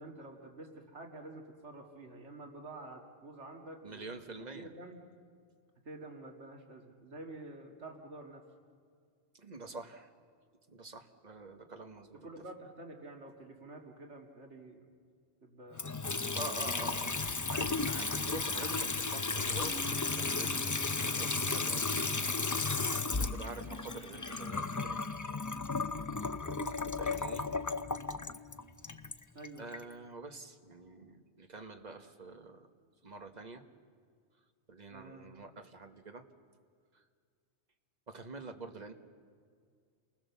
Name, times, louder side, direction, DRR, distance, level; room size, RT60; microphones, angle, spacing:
voice 1, 0.0-5.0 5.8-8.4 12.2-14.9 15.4-16.5 16.8-17.3 22.7-23.0 29.3-29.7 34.9-35.4, right 2 dB, 80° right, 2 dB, 2.3 m, -49 dB
voice 2, 3.8-4.7 9.3-10.1 10.7-12.3 16.3-17.2 17.5-21.9 23.0-25.1 27.0-27.5 29.6-32.7 33.0-33.6 34.7-36.3 36.9-37.0 38.1-38.9, right 3 dB, 40° right, 6 dB, 1.5 m, -47 dB
Water tap faucet / Sink (filling or washing) / Trickle dribble, 15.7-29.8, left 3 dB, 25° left, 0.4 m, -34 dB
sound 1, 19.6-25.0 26.5-28.6, left 1 dB, 75° left, 1.9 m, -50 dB
29.5 x 20.0 x 7.1 m, 2.1 s
omnidirectional pair, 1.2 m